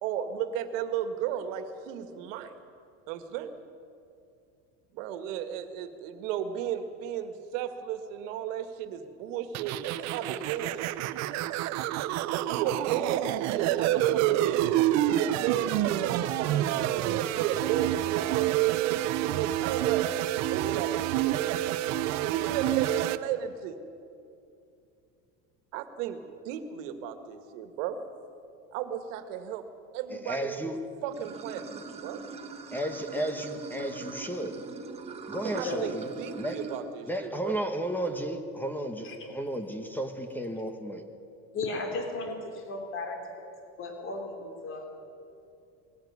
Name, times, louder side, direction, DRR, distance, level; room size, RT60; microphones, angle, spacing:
voice 1, 0.0-2.5 3.1-3.5 4.9-10.9 12.3-14.7 15.1-18.5 18.8-20.2 20.5-21.4 22.3-23.8 25.7-28.0 28.7-29.6 29.9-30.7 31.0-31.7 32.0-32.2 35.4-37.6, right 9 dB, 80° right, 8 dB, 1.9 m, -34 dB
sound 1, 9.5-23.2, right 14 dB, 45° right, 0.7 m, -28 dB
voice 2, 30.1-30.8 32.7-34.6 35.3-36.1 36.4-36.6 37.1-41.0, right 1 dB, 5° left, 7 dB, 1.1 m, -33 dB
Water / Sink (filling or washing), 31.1-36.8, right 5 dB, 15° right, 1.3 m, -42 dB
voice 3, 41.5-43.2 43.8-44.9, left 3 dB, 35° left, 3 dB, 3.1 m, -35 dB
20.0 x 14.0 x 9.5 m, 2.6 s
cardioid pair, 160°, 37 cm